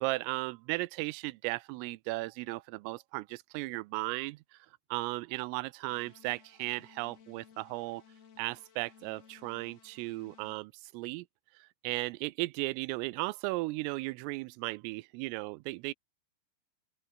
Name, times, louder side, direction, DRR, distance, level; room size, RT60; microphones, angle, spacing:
voice 1, 0.0-4.6 4.9-8.0 8.4-11.3 11.6-15.9, right 23 dB, 90° right, 3.3 m, -36 dB
sound 1, 5.9-10.6, left 7 dB, 55° left, 5.1 m, -59 dB
open air
omnidirectional pair, 5.8 m